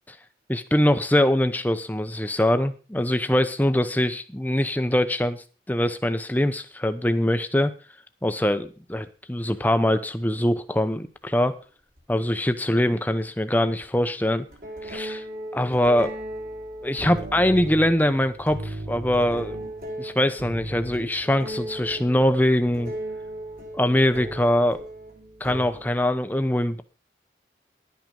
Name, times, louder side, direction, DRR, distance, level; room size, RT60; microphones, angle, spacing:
voice 1, 0.5-7.7 8.2-11.6 12.1-14.5 14.8-15.2 15.5-16.2 16.8-19.6 20.0-22.9 23.7-24.8 25.4-26.8, left 1 dB, 10° left, 10 dB, 0.8 m, -23 dB
sound 1, 10.3-10.4 12.0-12.1 13.8-14.0 14.5-26.1, right 1 dB, 55° right, 4.1 m, -36 dB
12.0 x 9.1 x 5.3 m, 0.36 s
head